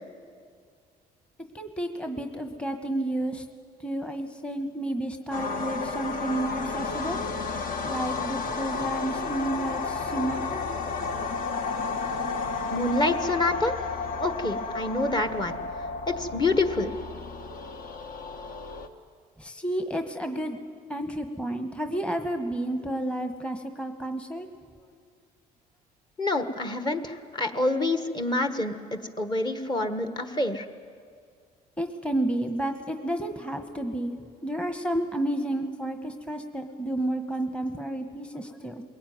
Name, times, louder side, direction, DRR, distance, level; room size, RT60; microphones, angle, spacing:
voice 1, 1.5-3.4 3.8-7.2 7.8-10.6 19.4-20.6 20.9-24.5 31.8-34.1 34.4-38.8, right 1 dB, 5° left, 6 dB, 1.3 m, -31 dB
sound 1, 5.3-18.9, left 4 dB, 55° left, 1.4 m, -32 dB
voice 2, 12.7-13.7 14.1-15.6 16.2-16.9 26.2-30.6, left 2 dB, 25° left, 8 dB, 1.4 m, -27 dB
21.5 x 17.5 x 9.4 m, 2.1 s
cardioid pair, 110°, 17 cm